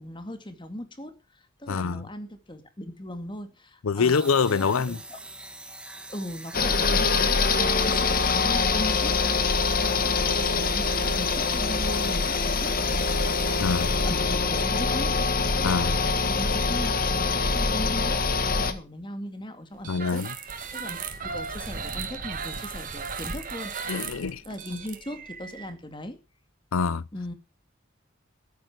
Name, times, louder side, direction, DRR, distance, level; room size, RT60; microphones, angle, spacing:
voice 1, 0.0-5.2 6.1-20.2 20.7-23.7 24.5-26.2 27.1-27.3, left 1 dB, 25° left, 2.1 m, -39 dB
voice 2, 1.7-2.1 3.8-5.0 13.6-14.0 15.6-16.0 19.9-20.3 23.9-24.4 26.7-27.1, left 5 dB, 85° left, 0.6 m, -25 dB
sound 1, 4.0-14.5, right 2 dB, 5° right, 1.4 m, -43 dB
sound 2, 6.5-18.7, left 4 dB, 45° left, 1.6 m, -24 dB
sound 3, 19.8-25.7, right 5 dB, 40° right, 2.2 m, -36 dB
14.0 x 9.3 x 6.1 m
head